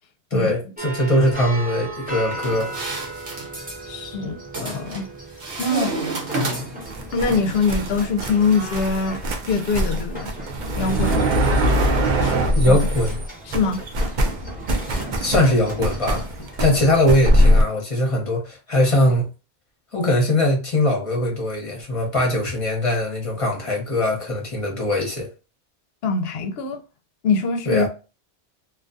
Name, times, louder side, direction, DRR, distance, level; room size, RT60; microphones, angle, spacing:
voice 1, 0.3-2.7 12.6-13.1 15.2-16.2 16.6-19.3 19.9-25.3 27.7-27.9, left 1 dB, 35° left, 0.8 m, -21 dB
sound 1, 0.8-17.4, right 1 dB, 10° right, 0.7 m, -37 dB
sound 2, 2.3-3.5 4.5-5.0 5.4-6.9, right 2 dB, 80° right, 1.0 m, -29 dB
voice 2, 3.9-5.1 5.6-5.9 7.1-10.3 10.8-11.4 12.2-12.8 13.5-13.8 26.0-26.8 27.2-27.9, left 4 dB, 70° left, 0.8 m, -23 dB
sound 3, 6.8-13.3 13.5-17.6, equal, 55° right, 0.5 m, -22 dB
2.3 x 2.3 x 2.5 m
omnidirectional pair, 1.1 m